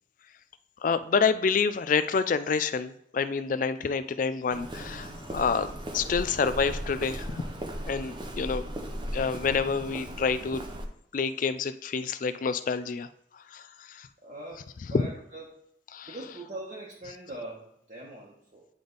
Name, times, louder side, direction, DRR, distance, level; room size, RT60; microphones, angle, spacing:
voice 1, 0.8-7.4 7.9-8.6 9.1-10.6 11.1-13.1 13.5-14.1 15.9-16.1, left 5 dB, 40° left, 13 dB, 0.3 m, -28 dB
Walk footsteps, 4.5-10.8, equal, 25° right, 0.5 m, -37 dB
voice 2, 14.2-15.6 16.1-18.7, right 1 dB, 40° right, -5 dB, 1.1 m, -42 dB
9.6 x 3.4 x 4.0 m, 0.73 s
head